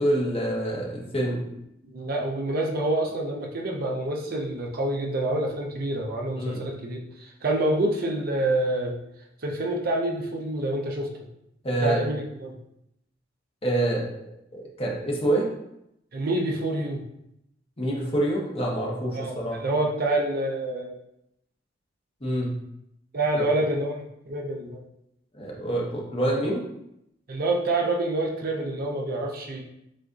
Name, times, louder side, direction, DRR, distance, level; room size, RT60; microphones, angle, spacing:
voice 1, 0.0-1.4 6.4-6.7 11.6-12.0 13.6-14.1 14.5-15.5 17.8-19.6 22.2-22.5 23.3-23.5 25.3-26.6, right 1 dB, 30° left, -3 dB, 1.0 m, -26 dB
voice 2, 1.8-8.9 9.4-11.1 11.8-12.6 16.1-17.0 19.1-21.0 23.1-24.8 27.3-29.6, right 1 dB, 50° right, -1 dB, 0.7 m, -27 dB
7.5 x 2.5 x 2.5 m, 0.81 s
head